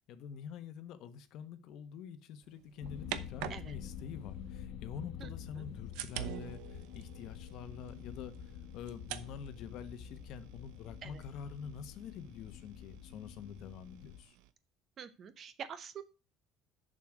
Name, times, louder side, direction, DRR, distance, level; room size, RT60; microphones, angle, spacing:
voice 1, 0.1-8.3 8.7-14.4, left 7 dB, 55° left, 1.1 m, -47 dB
sound 1, 2.4-4.7 5.4-14.5, right 12 dB, 90° right, 0.9 m, -48 dB
sound 2, 2.8-14.2, left 8 dB, 85° left, 1.5 m, -47 dB
voice 2, 15.0-16.0, right 7 dB, 30° right, 0.9 m, -46 dB
7.3 x 6.6 x 7.7 m
cardioid pair, 175°, 0 cm